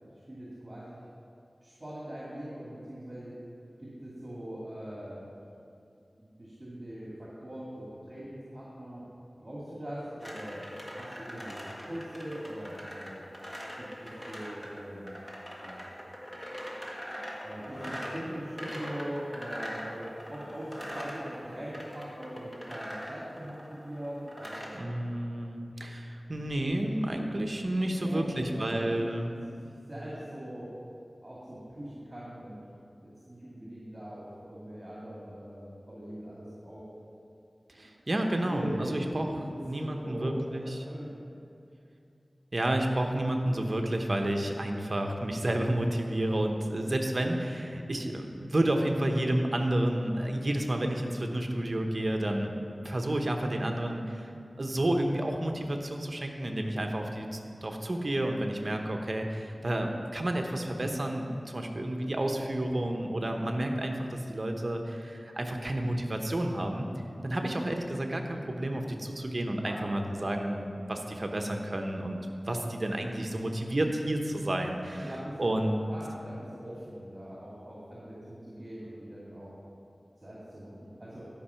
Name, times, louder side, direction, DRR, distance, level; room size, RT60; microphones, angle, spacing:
voice 1, 0.3-1.0 1.6-3.3 3.8-5.3 6.1-9.1 9.4-10.6 11.0-13.2 13.8-15.1 15.6-15.8 17.4-24.7 27.9-28.9 29.5-30.7 31.2-32.6 33.0-36.9 37.7-37.9 38.2-41.1 67.2-67.4 69.6-69.8 75.0-79.6 80.2-81.2, equal, 30° right, -7 dB, 2.2 m, -41 dB
sound 1, 10.2-24.8, equal, 15° left, 1.7 m, -42 dB
voice 2, 24.7-29.3 37.7-39.3 39.7-40.8 42.5-54.3 54.6-66.9 67.2-72.2 72.4-75.1 75.4-75.8, right 1 dB, 50° right, 3 dB, 1.0 m, -30 dB
12.0 x 5.4 x 5.7 m, 2.5 s
wide cardioid pair, 70°, 0 cm